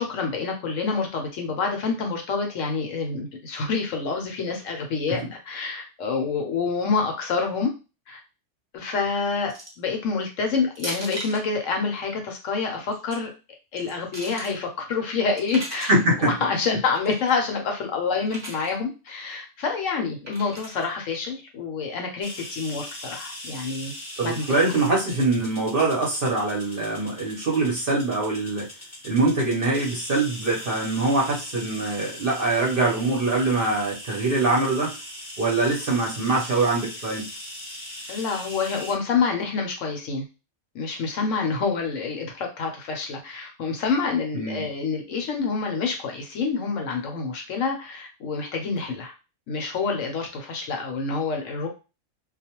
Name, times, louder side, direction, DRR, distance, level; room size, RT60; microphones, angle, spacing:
voice 1, 0.0-7.7 8.1-8.2 8.7-13.3 13.7-23.9 24.2-24.4 38.1-40.2 40.7-49.1 49.5-51.7, left 4 dB, 70° left, 3 dB, 0.9 m, -27 dB
sound 1, 9.5-9.9 10.8-11.4 12.8-13.2 13.8-14.5 15.4-16.0 16.9-17.3 18.3-18.7 20.3-20.8, right 1 dB, 15° right, 0.6 m, -37 dB
voice 2, 15.9-16.3 24.2-28.7 29.0-35.0 35.4-37.2 44.3-44.7, right 2 dB, 50° right, -4 dB, 0.8 m, -23 dB
sound 2, 22.2-38.9, left 1 dB, 15° left, 0.8 m, -40 dB
2.4 x 2.2 x 2.8 m, 0.30 s
omnidirectional pair, 1.5 m